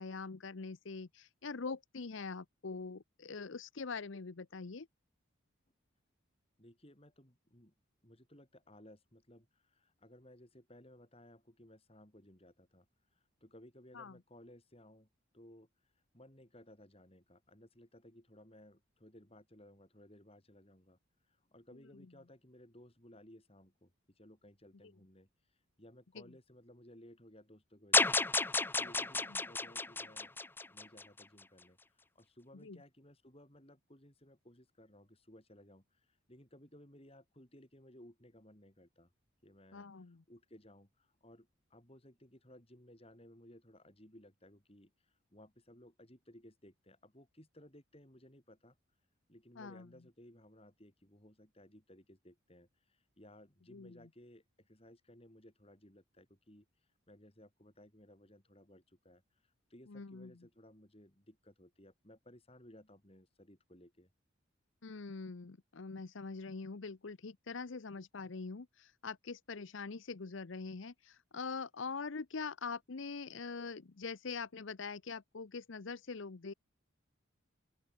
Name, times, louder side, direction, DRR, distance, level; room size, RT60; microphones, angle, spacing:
voice 1, 0.0-4.9 13.9-14.1 32.6-32.8 39.7-40.2 49.6-49.9 53.7-53.9 59.9-60.3 64.8-76.5, left 4 dB, 70° left, 0.7 m, -43 dB
voice 2, 6.6-7.7 8.0-12.9 13.1-15.1 15.3-15.7 16.1-21.0 21.3-25.3 25.8-28.3 28.8-30.4 30.7-39.1 39.4-48.8 49.3-56.7 57.1-64.1, left 1 dB, 30° left, 5.6 m, -59 dB
sound 1, 27.9-31.2, left 3 dB, 10° left, 0.6 m, -32 dB
open air
head